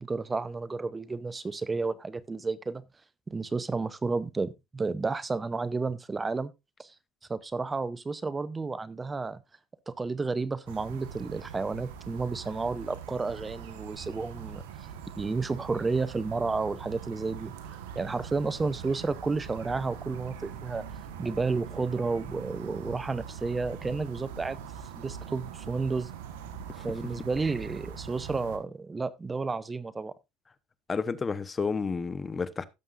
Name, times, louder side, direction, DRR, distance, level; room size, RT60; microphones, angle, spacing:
voice 1, 0.0-2.8 3.3-6.5 6.8-6.9 7.3-9.4 9.9-14.9 15.2-17.5 18.0-20.9 21.2-24.6 25.0-26.1 26.8-30.1, right 4 dB, 20° right, 0.7 m, -31 dB
sound 1, 10.7-28.6, right 8 dB, 85° right, 1.3 m, -42 dB
voice 2, 30.9-32.6, left 5 dB, 30° left, 1.0 m, -31 dB
17.0 x 7.3 x 2.5 m
supercardioid pair, 80°, 0 cm